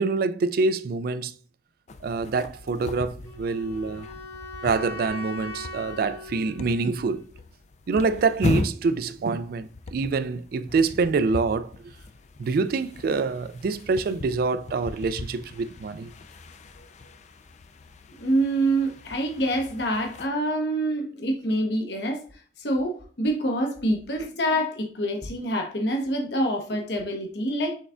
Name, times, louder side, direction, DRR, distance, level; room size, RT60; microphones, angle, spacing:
voice 1, 0.0-1.3 2.0-4.1 4.6-7.3 7.9-11.9 12.4-16.1, right 4 dB, 55° right, 0.3 m, -26 dB
sound 1, 1.9-20.3, left 2 dB, 40° left, 0.4 m, -38 dB
Wind instrument woodwind instrument, 3.2-7.3, left 2 dB, 20° left, 0.9 m, -40 dB
voice 2, 18.2-22.2 22.6-27.8, right 1 dB, 70° left, 1.0 m, -26 dB
6.3 x 3.4 x 2.5 m
head